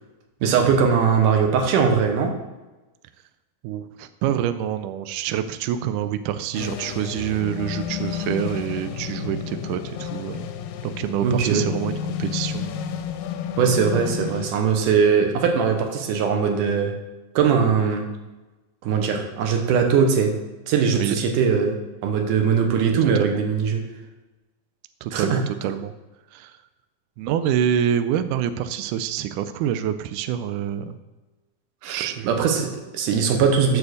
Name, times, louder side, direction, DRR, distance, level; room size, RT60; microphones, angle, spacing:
voice 1, 0.4-2.3 11.2-11.6 13.6-16.9 17.4-18.1 18.8-20.3 20.7-21.8 22.0-23.8 25.1-25.4 31.8-33.8, right 6 dB, 70° right, 4 dB, 2.4 m, -20 dB
voice 2, 3.6-10.5 10.8-12.9 20.9-21.2 22.8-23.4 25.0-25.9 26.3-26.5 27.2-31.0 31.9-32.5, right 10 dB, 90° right, 10 dB, 1.8 m, -27 dB
sound 1, 6.5-14.5, left 8 dB, 85° left, 2.3 m, -31 dB
7.0 x 6.9 x 6.4 m, 1.1 s
omnidirectional pair, 4.2 m